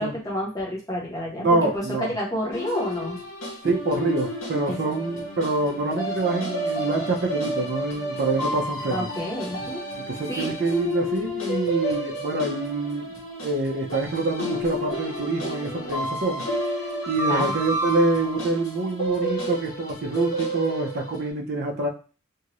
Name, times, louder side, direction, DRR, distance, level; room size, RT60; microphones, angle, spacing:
voice 1, 0.0-3.2 4.7-4.9 8.9-9.9 10.3-10.5 17.3-17.5, equal, 15° left, -4 dB, 1.0 m, -30 dB
voice 2, 1.4-2.1 3.6-9.1 10.1-13.1 13.4-16.5 17.1-21.9, right 2 dB, 50° right, 1 dB, 0.5 m, -26 dB
sound 1, 2.5-21.3, equal, 65° left, 1.3 m, -31 dB
2.6 x 2.5 x 3.0 m, 0.36 s
head